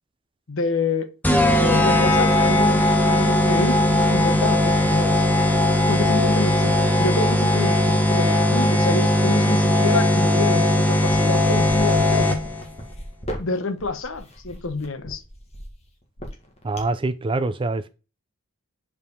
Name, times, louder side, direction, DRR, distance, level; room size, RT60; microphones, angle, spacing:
voice 1, 0.5-1.1 1.5-5.3 5.9-12.4 13.4-15.2, left 3 dB, 60° left, 0.9 m, -28 dB
sound 1, 1.2-12.6, left 1 dB, 10° left, 0.9 m, -19 dB
sound 2, 11.0-17.1, equal, 30° left, 1.8 m, -37 dB
voice 2, 16.6-17.9, right 2 dB, 25° right, 0.4 m, -25 dB
5.5 x 4.9 x 5.2 m
head